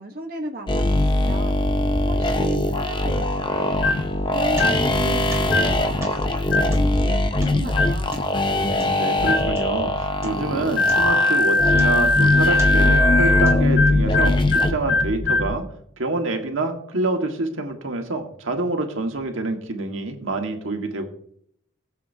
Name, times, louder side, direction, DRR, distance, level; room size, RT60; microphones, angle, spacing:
voice 1, 0.0-1.6 2.1-3.9 4.3-8.2, right 1 dB, 45° right, 1 dB, 1.0 m, -35 dB
sound 1, 0.7-14.7, left 2 dB, 25° left, 0.7 m, -22 dB
sound 2, 3.8-4.1 4.5-4.9 5.4-5.8 6.5-6.8 7.7-8.0 9.2-9.5 10.8-15.5, left 2 dB, 60° left, 1.2 m, -21 dB
sound 3, 4.0-5.1 5.3-9.9 10.2-10.6 10.9-12.2 12.5-13.0 13.5-14.0, right 1 dB, 15° right, 1.4 m, -40 dB
voice 2, 8.7-15.6 16.0-21.0, right 2 dB, 80° right, 4 dB, 1.5 m, -27 dB
19.0 x 7.5 x 2.7 m, 0.69 s
head